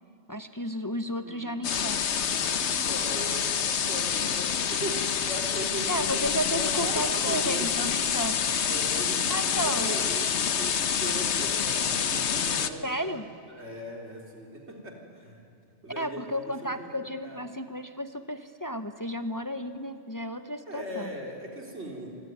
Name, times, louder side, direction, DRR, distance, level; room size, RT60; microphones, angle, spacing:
voice 1, 0.3-2.0 5.9-8.4 9.3-10.0 12.8-13.3 16.0-21.1, equal, 20° left, 8 dB, 0.8 m, -33 dB
voice 2, 1.1-1.7 2.6-6.2 6.6-7.7 8.6-13.1 13.5-15.4 15.8-16.9 17.2-17.4 20.7-22.1, right 1 dB, 90° right, 0 dB, 4.2 m, -39 dB
sound 1, 1.6-12.7, left 7 dB, 90° left, 1.2 m, -27 dB
26.0 x 23.5 x 9.4 m, 2.5 s
omnidirectional pair, 1.1 m